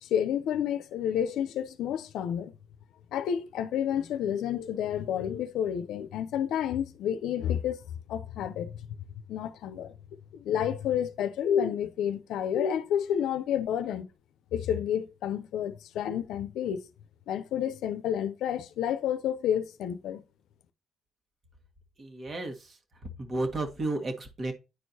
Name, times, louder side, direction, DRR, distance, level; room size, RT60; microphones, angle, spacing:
voice 1, 0.0-2.5 3.1-7.8 8.1-8.7 9.3-9.9 10.3-14.1 14.5-16.8 17.3-20.2, left 9 dB, 85° left, 0.6 m, -30 dB
voice 2, 22.0-22.8 23.2-24.5, right 2 dB, 45° right, 1.7 m, -32 dB
9.8 x 4.6 x 2.8 m
cardioid pair, 90°, 0 cm